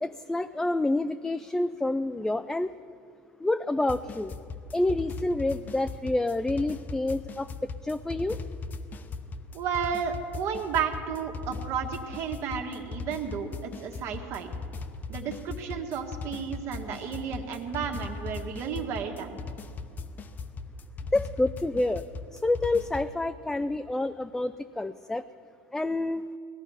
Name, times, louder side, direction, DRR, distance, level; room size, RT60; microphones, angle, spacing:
voice 1, 0.0-2.7 3.4-4.3 4.7-8.4 21.1-22.0 22.4-25.2 25.7-26.3, left 2 dB, 10° left, 11 dB, 0.3 m, -28 dB
sound 1, 3.9-23.1, left 4 dB, 35° left, 0.8 m, -39 dB
voice 2, 9.5-14.5 15.1-19.4, right 6 dB, 55° right, 4 dB, 1.7 m, -32 dB
18.5 x 13.0 x 5.6 m, 2.3 s
supercardioid pair, 115°, 5 cm